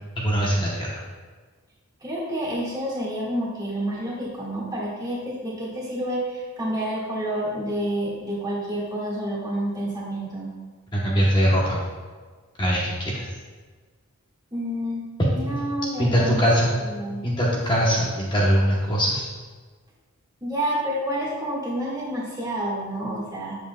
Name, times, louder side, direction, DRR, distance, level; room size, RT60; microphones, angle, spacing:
voice 1, 0.2-1.0 10.9-11.8 12.6-13.3 15.3-15.6 16.0-16.8 17.2-19.3, equal, 20° left, -5 dB, 0.9 m, -22 dB
voice 2, 2.0-10.5 14.5-16.4 16.7-17.2 20.4-23.6, right 1 dB, 15° right, -6 dB, 1.7 m, -29 dB
7.8 x 7.4 x 2.3 m, 1.5 s
head